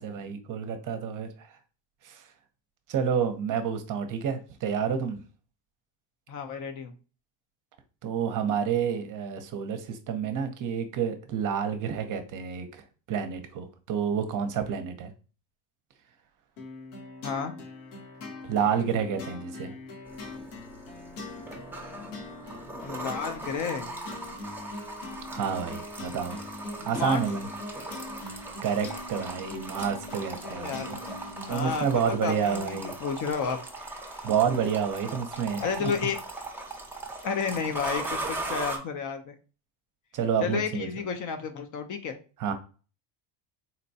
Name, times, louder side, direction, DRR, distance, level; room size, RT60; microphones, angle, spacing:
voice 1, 0.0-1.5 2.0-2.2 2.9-5.2 8.0-12.7 13.1-15.1 18.5-19.7 25.3-26.4 26.8-27.5 28.6-31.0 31.5-33.0 34.2-35.9 40.1-40.9 42.4-42.5, right 7 dB, 45° right, 0.6 m, -29 dB
voice 2, 6.3-6.9 17.2-17.5 22.8-23.9 26.8-27.2 30.5-31.0 31.5-33.6 35.6-36.2 37.2-39.3 40.4-42.2, left 6 dB, 40° left, 0.5 m, -31 dB
sound 1, 16.6-32.0, left 2 dB, 80° left, 1.0 m, -42 dB
sound 2, 20.1-38.8, right 2 dB, 5° right, 0.6 m, -39 dB
4.0 x 2.2 x 2.6 m
supercardioid pair, 110°, 47 cm